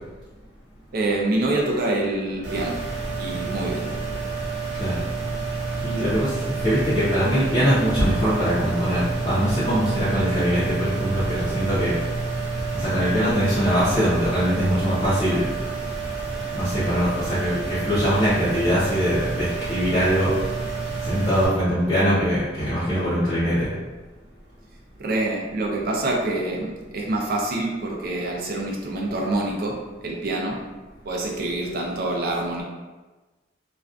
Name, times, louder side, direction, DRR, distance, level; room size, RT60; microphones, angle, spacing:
voice 1, 0.9-2.7 3.2-4.1 25.0-29.7 30.0-30.5 31.0-32.6, right 2 dB, 55° right, -1 dB, 0.4 m, -26 dB
sound 1, 2.4-21.5, right 3 dB, 85° right, 1.0 m, -29 dB
voice 2, 5.8-12.0 12.7-15.5 16.5-20.4 21.0-23.7, equal, 25° left, -13 dB, 0.6 m, -22 dB
2.4 x 2.2 x 2.4 m, 1.2 s
head